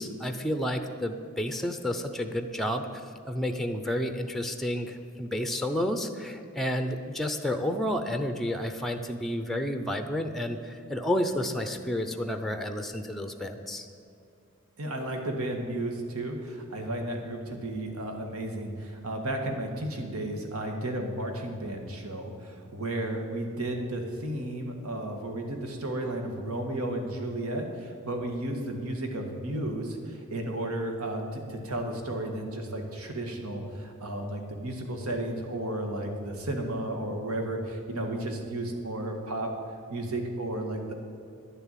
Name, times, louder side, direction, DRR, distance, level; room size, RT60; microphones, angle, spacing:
voice 1, 0.0-13.9, left 1 dB, ahead, 7 dB, 0.5 m, -31 dB
voice 2, 14.8-39.5 39.9-40.9, right 1 dB, 85° right, 3 dB, 1.8 m, -33 dB
11.0 x 6.9 x 9.1 m, 2.5 s
head